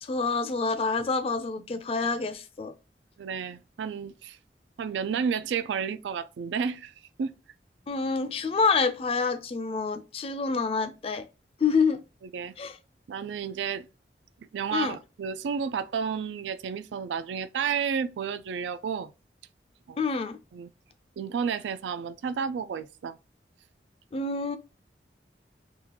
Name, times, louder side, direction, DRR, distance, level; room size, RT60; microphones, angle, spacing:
voice 1, 0.0-2.7 7.9-11.3 11.6-12.0 12.6-12.8 14.7-15.0 20.0-20.4 24.1-24.6, left 4 dB, 35° left, 0.3 m, -27 dB
voice 2, 3.2-4.4 4.8-6.9 7.2-7.3 12.3-12.5 13.1-13.9 14.5-19.1 19.9-20.0 20.5-20.7 21.2-23.2, right 6 dB, 90° right, 0.3 m, -31 dB
3.6 x 2.3 x 2.8 m
head